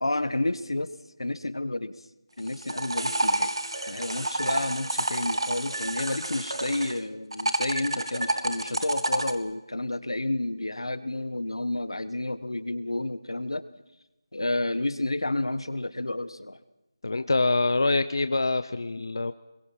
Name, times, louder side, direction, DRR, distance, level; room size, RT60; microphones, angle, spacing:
voice 1, 0.0-0.9 1.2-1.9 2.4-3.5 3.8-13.6 14.3-16.6, left 2 dB, 90° left, 13 dB, 1.5 m, -30 dB
sound 1, 2.4-7.0 7.3-9.3, right 2 dB, 85° right, 1.9 m, -29 dB
voice 2, 17.0-19.3, left 3 dB, 55° left, 12 dB, 0.7 m, -25 dB
27.5 x 22.0 x 5.6 m, 0.95 s
figure-of-eight pair, 175°, 3 cm